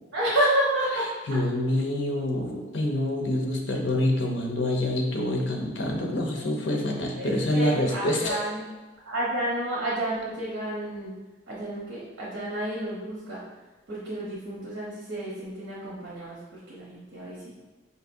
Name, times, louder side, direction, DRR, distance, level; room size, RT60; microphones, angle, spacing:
voice 1, 0.1-1.1 7.2-8.6 9.0-11.1 11.5-13.4 13.9-17.5, right 1 dB, 85° right, -7 dB, 0.9 m, -30 dB
voice 2, 1.3-8.4, left 1 dB, 75° left, 1 dB, 0.7 m, -26 dB
4.7 x 2.8 x 2.6 m, 1.2 s
head